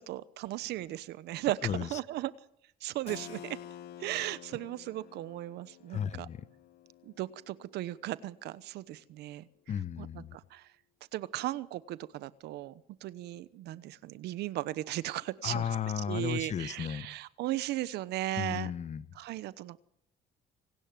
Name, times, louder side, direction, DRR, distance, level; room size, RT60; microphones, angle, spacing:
voice 1, 0.0-2.3 2.8-3.6 4.0-6.3 7.0-9.5 10.0-10.6 11.1-12.7 13.0-15.7 16.1-18.7 19.2-19.8, right 15 dB, 80° right, 1.0 m, -36 dB
voice 2, 1.6-2.0 5.9-6.5 9.7-10.4 15.4-17.1 18.4-19.0, left 8 dB, 45° left, 1.1 m, -34 dB
Keyboard (musical), 3.1-8.6, left 11 dB, 75° left, 1.1 m, -50 dB
26.5 x 18.5 x 7.6 m
cardioid pair, 110°, 17 cm